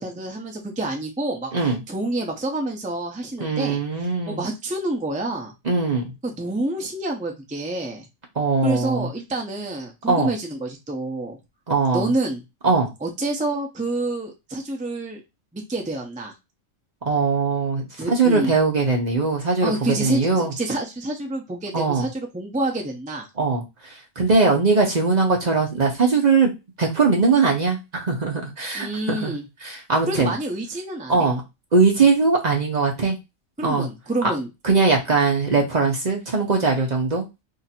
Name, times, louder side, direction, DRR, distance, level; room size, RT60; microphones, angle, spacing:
voice 1, 0.0-3.8 4.3-5.5 6.2-8.0 8.6-11.4 11.9-12.4 13.0-15.2 15.5-16.3 18.0-18.5 19.6-23.3 28.7-29.5 30.1-31.3 33.6-34.5, right 2 dB, 10° right, 1 dB, 0.4 m, -28 dB
voice 2, 3.4-4.4 5.6-6.1 8.4-9.1 10.1-10.3 11.7-12.1 12.6-12.9 17.0-19.7 20.0-20.5 21.7-22.1 23.4-26.5 26.8-29.3 29.6-30.3 31.1-31.4 31.7-33.2 33.6-33.9 34.6-37.3, right 4 dB, 40° right, 1 dB, 0.7 m, -20 dB
2.8 x 2.5 x 4.1 m, 0.24 s
omnidirectional pair, 1.4 m